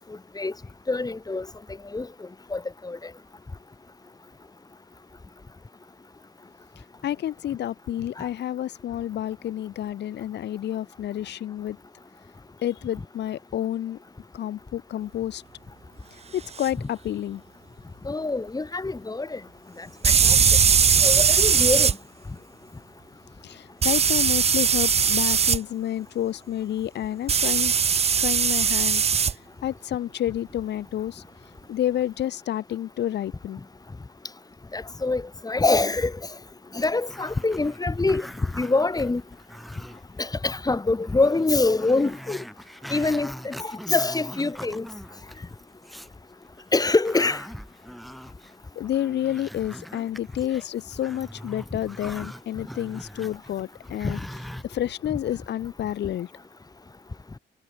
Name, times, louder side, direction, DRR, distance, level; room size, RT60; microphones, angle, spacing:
voice 1, 0.9-1.5 1.9-2.1 2.5-3.0 8.2-8.3 16.8-16.9 18.0-19.4 19.8-19.9 20.2-20.4 21.0-21.9 34.7-36.1 36.7-38.3 38.6-39.2 40.2-42.4 42.9-44.9 46.7-47.4, left 3 dB, 20° left, 1.9 m, -24 dB
voice 2, 7.0-11.8 12.6-14.0 14.3-15.4 16.3-17.4 23.4-27.7 28.2-29.0 29.6-31.2 31.7-33.6 48.8-56.3, left 11 dB, 60° left, 0.7 m, -29 dB
sound 1, 16.6-16.7 20.0-21.9 23.8-25.6 27.3-29.3, right 6 dB, 30° right, 0.6 m, -20 dB
Growling, 36.8-40.3 40.6-40.7 41.0-46.2 46.6-54.6, equal, ahead, 1.3 m, -42 dB
cardioid pair, 90°, 20 cm